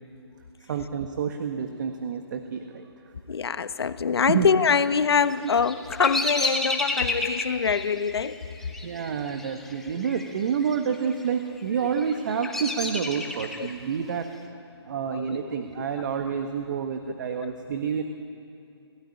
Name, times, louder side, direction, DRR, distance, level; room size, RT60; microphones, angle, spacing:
voice 1, 0.7-3.1 4.3-4.5 8.8-14.3 14.8-18.0, right 7 dB, 45° right, 1.6 m, -29 dB
voice 2, 3.3-8.4 13.6-13.7 15.1-15.5 17.4-17.5, left 6 dB, 60° left, 1.2 m, -24 dB
Bird vocalization bird call bird song, 5.2-10.3 10.5-11.1 11.7-13.7, left 2 dB, ahead, 1.5 m, -31 dB
28.5 x 17.5 x 10.0 m
hypercardioid pair, 150°, 14 cm